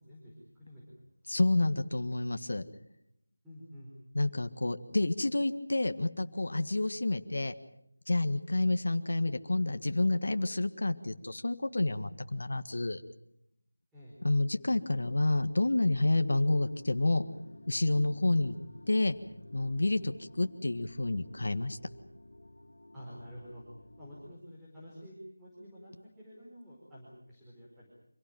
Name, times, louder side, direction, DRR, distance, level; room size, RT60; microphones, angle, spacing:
voice 1, 0.0-1.4 3.4-3.9 13.9-14.2 22.9-23.6 24.0-25.9 26.2-27.9, equal, 5° right, -9 dB, 4.6 m, -50 dB
voice 2, 1.3-2.7 4.1-7.5 8.1-13.0 14.2-17.2 17.7-18.6 18.9-19.2 19.5-21.8, left 2 dB, 65° left, 8 dB, 1.7 m, -29 dB
sound 1, 16.0-24.4, left 1 dB, 90° left, 3.0 m, -53 dB
26.5 x 17.0 x 9.2 m, 0.76 s
figure-of-eight pair, 175°, 0 cm